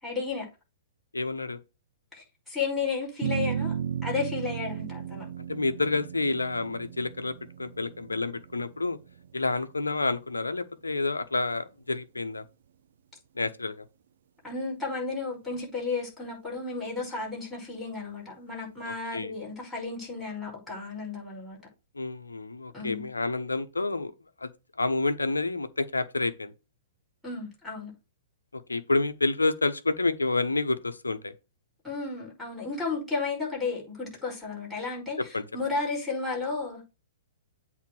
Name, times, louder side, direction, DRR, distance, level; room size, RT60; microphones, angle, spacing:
voice 1, 0.0-0.4 2.1-3.8 4.0-5.3 14.4-21.6 22.7-23.1 27.2-27.9 31.8-35.2 35.5-36.8, left 4 dB, ahead, 5.6 m, -33 dB
voice 2, 1.1-1.6 5.5-7.3 7.6-9.0 9.3-12.4 13.4-13.8 18.8-19.3 21.9-24.1 24.4-24.5 24.8-26.5 28.5-31.3 35.2-35.4, left 3 dB, 80° left, 0.9 m, -29 dB
sound 1, 3.2-9.8, right 8 dB, 60° right, 0.6 m, -35 dB
8.2 x 3.7 x 6.3 m
figure-of-eight pair, 110°, 0 cm